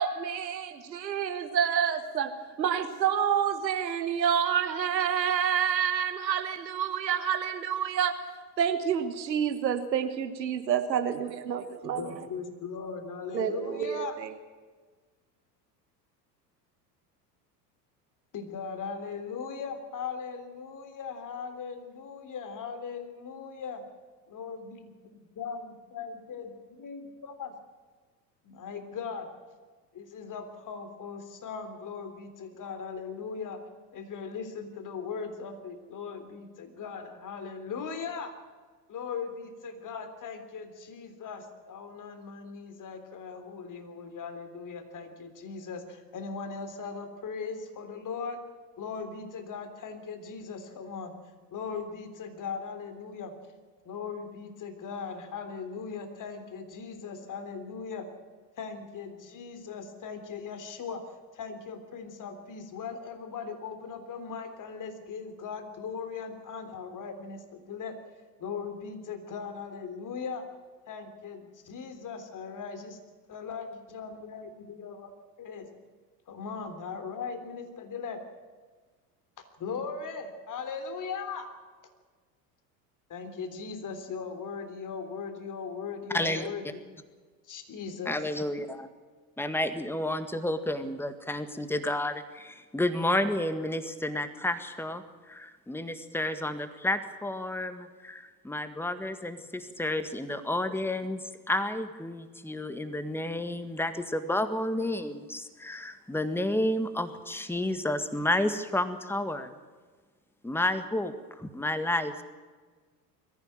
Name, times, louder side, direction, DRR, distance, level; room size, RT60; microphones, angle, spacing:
voice 1, 0.0-8.1 8.6-12.2 13.3-14.3, right 8 dB, 85° right, 8 dB, 1.5 m, -28 dB
voice 2, 12.0-14.1 18.3-23.8 24.3-26.5 26.8-27.5 28.4-29.3 29.9-33.6 33.9-38.3 38.9-48.4 48.8-51.1 51.5-53.3 53.8-58.1 58.6-68.0 68.4-70.5 70.9-73.0 73.3-75.1 75.4-75.7 76.3-78.2 79.6-81.5 83.1-86.8 87.4-88.2, left 5 dB, 40° left, 8 dB, 3.4 m, -39 dB
voice 3, 86.1-86.5 88.1-88.9 89.4-109.5 110.4-112.2, left 1 dB, 5° left, 10 dB, 1.8 m, -31 dB
22.0 x 15.0 x 9.1 m, 1.4 s
hypercardioid pair, 75°, 49 cm